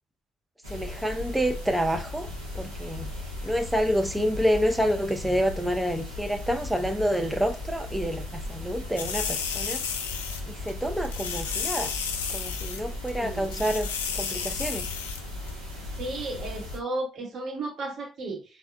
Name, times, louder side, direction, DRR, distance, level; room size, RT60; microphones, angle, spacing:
sound 1, 0.6-16.8, left 2 dB, 85° right, 0.8 m, -37 dB
voice 1, 0.7-2.3 2.5-3.1 3.4-9.8 10.5-11.9 12.3-13.9 14.1-14.9, equal, 5° right, 0.4 m, -28 dB
sound 2, 9.0-10.4 10.7-10.8 11.0-12.8 13.1-13.2 13.4-15.2 15.5-15.6, left 6 dB, 80° left, 0.3 m, -32 dB
voice 2, 13.2-13.7 16.0-18.4, right 2 dB, 55° right, 0.9 m, -34 dB
4.3 x 2.2 x 2.3 m
figure-of-eight pair, 45°, 0 cm